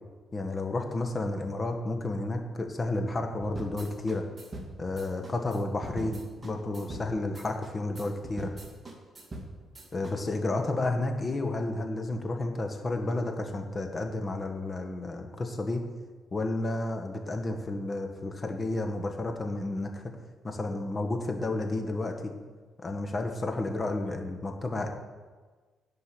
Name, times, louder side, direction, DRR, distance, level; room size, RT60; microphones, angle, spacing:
voice 1, 0.3-4.2 4.8-8.5 9.9-15.9 16.3-20.0 20.4-22.3 22.8-24.9, left 2 dB, 30° left, 4 dB, 1.7 m, -31 dB
sound 1, 3.4-10.1, right 1 dB, 25° right, 2.4 m, -42 dB
12.5 x 5.5 x 8.7 m, 1.4 s
cardioid pair, 90°, 0 cm